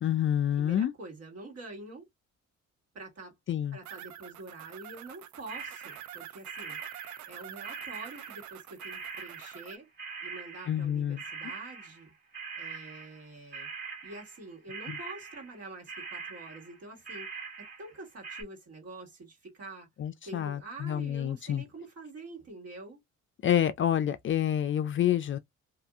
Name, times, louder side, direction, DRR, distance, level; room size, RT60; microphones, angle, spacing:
voice 1, 0.0-0.9 3.5-3.8 10.7-11.2 14.9-15.0 20.0-21.6 23.4-25.4, left 10 dB, 40° left, 0.4 m, -28 dB
voice 2, 0.6-2.1 2.9-3.3 3.7-6.8 7.3-9.9 10.2-12.1 12.5-13.7 14.0-17.3 17.6-19.9 20.2-23.0, right 2 dB, 55° right, 1.7 m, -46 dB
sound 1, 3.8-9.8, right 11 dB, 70° right, 0.5 m, -47 dB
sound 2, 5.5-6.2 6.4-8.6 8.8-18.0 18.2-18.4, right 5 dB, 35° right, 1.5 m, -43 dB
2.7 x 2.5 x 2.3 m
cardioid pair, 90°, 30 cm